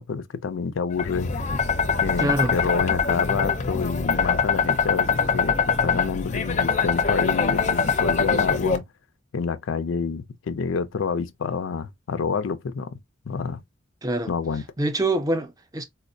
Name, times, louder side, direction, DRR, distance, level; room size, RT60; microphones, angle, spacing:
voice 1, 0.0-1.3 2.0-8.8 9.3-13.0 13.3-13.6 14.3-14.6, left 5 dB, 90° left, 0.4 m, -28 dB
sound 1, 1.0-8.8, left 5 dB, 35° left, 0.5 m, -23 dB
voice 2, 2.2-2.6 14.0-14.3 14.8-15.8, right 2 dB, 20° right, 0.5 m, -25 dB
4.1 x 2.0 x 2.6 m
head